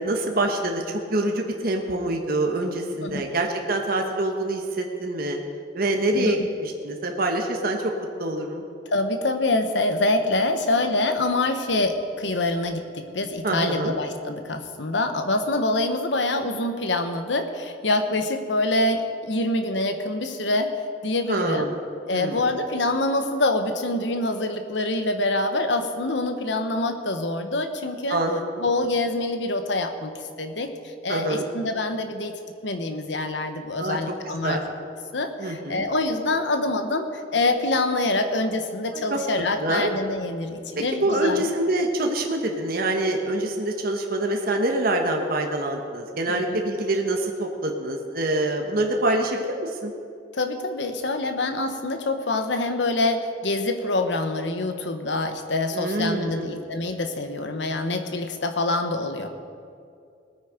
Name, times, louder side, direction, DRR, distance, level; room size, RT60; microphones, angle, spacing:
voice 1, 0.0-5.4 5.7-7.9 8.2-8.6 13.4-14.0 21.3-21.8 22.1-22.5 28.1-28.4 31.1-31.5 33.8-34.0 34.3-34.6 35.4-35.9 38.9-39.2 39.6-39.9 40.8-49.9 55.7-56.6, right 1 dB, 55° right, 2 dB, 1.3 m, -25 dB
voice 2, 6.1-6.5 8.9-20.7 21.0-21.7 22.1-28.2 28.6-30.1 30.4-32.3 32.6-34.6 35.1-41.4 46.3-46.6 50.3-59.3, left 2 dB, 80° left, 7 dB, 1.2 m, -25 dB
19.5 x 9.1 x 5.1 m, 2.4 s
head